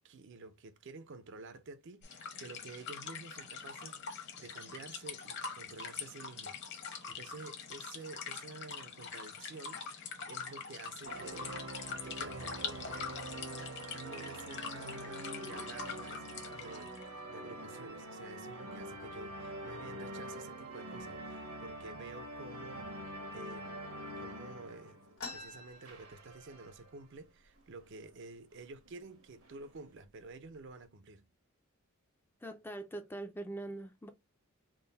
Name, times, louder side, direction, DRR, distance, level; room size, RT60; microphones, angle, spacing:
voice 1, 0.0-13.0 13.4-13.6 13.9-23.0 23.3-23.8 24.2-25.0 25.3-31.3, right 3 dB, 55° right, 0.5 m, -50 dB
sound 1, 2.0-17.0, left 6 dB, 55° left, 0.9 m, -44 dB
sound 2, 11.0-25.4 25.8-27.0 27.6-27.7 27.9-28.1 28.9-29.9, right 1 dB, 80° right, 1.2 m, -45 dB
sound 3, 25.2-26.8 27.1-27.2 27.5-28.1 28.7-28.9 29.6-29.7 30.2-30.7, left 3 dB, 85° left, 1.3 m, -48 dB
voice 2, 32.4-34.1, right 2 dB, 10° left, 0.3 m, -42 dB
3.7 x 2.1 x 3.8 m
head